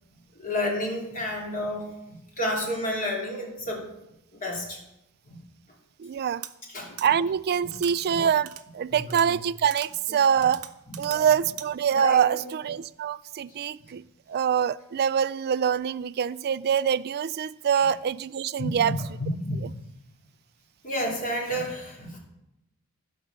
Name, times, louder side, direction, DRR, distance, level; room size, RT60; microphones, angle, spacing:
voice 1, 0.3-3.9 4.3-4.8 5.3-5.4 6.7-7.0 7.6-7.8 8.1-8.2 8.9-9.3 10.4-10.5 10.9-11.3 11.9-12.4 17.7-17.9 18.6-19.6 20.8-22.2, equal, 40° left, -2 dB, 3.1 m, -31 dB
voice 2, 6.0-6.4 7.0-10.7 11.0-14.0 14.3-18.9 19.6-19.7, right 8 dB, 45° right, 17 dB, 0.3 m, -25 dB
sound 1, 6.4-6.5 7.0-7.1 7.7-7.9 8.5-8.6 9.1-9.3 9.7-9.9 10.4-11.2 11.6-11.7, right 12 dB, 80° right, 0.8 m, -40 dB
15.0 x 5.4 x 6.8 m, 0.89 s
head